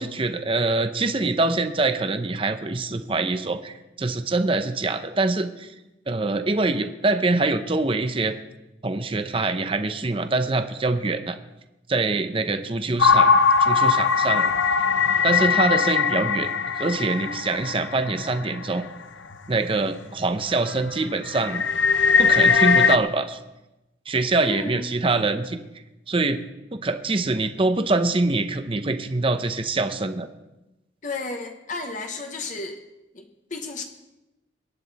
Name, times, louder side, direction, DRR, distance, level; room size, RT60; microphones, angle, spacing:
voice 1, 0.0-5.7 6.1-8.4 8.8-11.4 11.9-13.3 13.6-14.5 15.2-16.5 16.8-18.9 19.5-21.6 22.2-23.4 24.1-25.6 26.1-26.4 26.7-30.3, right 3 dB, 30° right, 9 dB, 0.7 m, -24 dB
sound 1, 13.0-18.8 19.3-19.4 19.9-20.2 20.5-23.0, left 5 dB, 80° left, 0.8 m, -20 dB
voice 2, 24.4-24.8 31.0-32.8 33.1-33.8, left 3 dB, 40° left, 4 dB, 1.0 m, -33 dB
22.5 x 9.9 x 4.1 m, 0.98 s
head